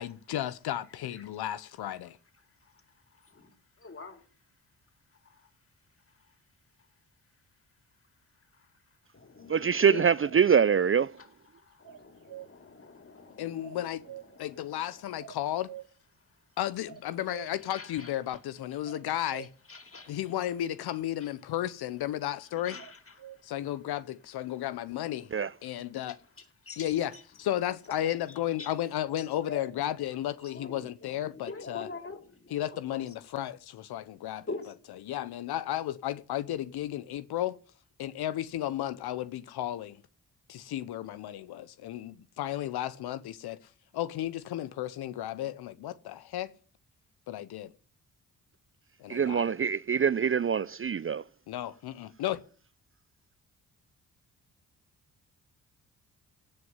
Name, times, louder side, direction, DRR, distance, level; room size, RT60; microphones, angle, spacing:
voice 1, 0.0-2.2 13.4-14.0 14.4-15.7 16.6-19.5 20.1-22.8 23.4-25.3 25.6-26.2 26.8-31.9 32.5-34.5 35.1-37.6 38.0-40.0 40.5-46.5 47.3-47.7 49.0-49.6 51.5-52.4, left 12 dB, 80° left, 0.9 m, -34 dB
voice 2, 2.6-4.3 5.1-5.5 6.1-6.4 6.8-6.9 8.5-8.7 9.1-10.5 11.2-15.2 16.3-16.4 17.7-18.4 18.7-18.9 19.7-20.2 21.2-21.3 22.6-23.5 25.7-25.8 26.1-27.2 28.3-28.7 29.2-29.6 30.4-33.1 34.4-34.7, left 3 dB, 35° left, 4.7 m, -46 dB
voice 3, 9.5-11.1 25.3-25.5 49.1-51.2, right 7 dB, 35° right, 0.6 m, -24 dB
sound 1, 10.2-10.9 11.8-12.5 13.6-14.4 15.2-15.9 16.9-17.6 18.9-19.5 22.8-23.4, right 11 dB, 60° right, 1.0 m, -46 dB
17.0 x 6.5 x 9.5 m
supercardioid pair, 60°, 38 cm